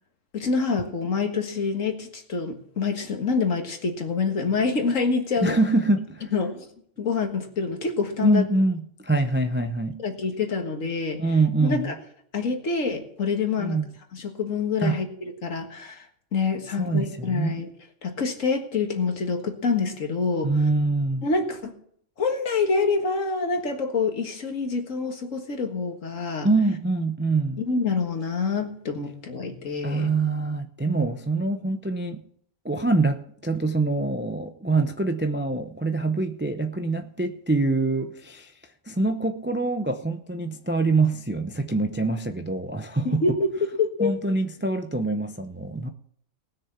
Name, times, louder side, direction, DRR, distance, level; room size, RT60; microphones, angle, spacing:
voice 1, 0.3-5.5 6.3-6.7 7.0-8.5 10.0-11.2 11.6-12.0 12.3-13.8 14.1-15.1 15.4-16.1 16.3-17.7 18.0-20.5 21.2-21.7 22.2-26.5 27.6-30.1 43.1-43.5 43.8-44.1, left 4 dB, 70° left, 2.0 m, -26 dB
voice 2, 5.4-6.3 8.2-10.0 11.2-11.9 13.6-13.9 14.8-15.0 16.8-17.6 20.4-21.3 26.4-27.6 29.8-32.2 32.6-38.5 38.9-43.2 44.0-45.9, right 3 dB, 15° right, 0.4 m, -25 dB
19.0 x 6.8 x 5.9 m
omnidirectional pair, 1.4 m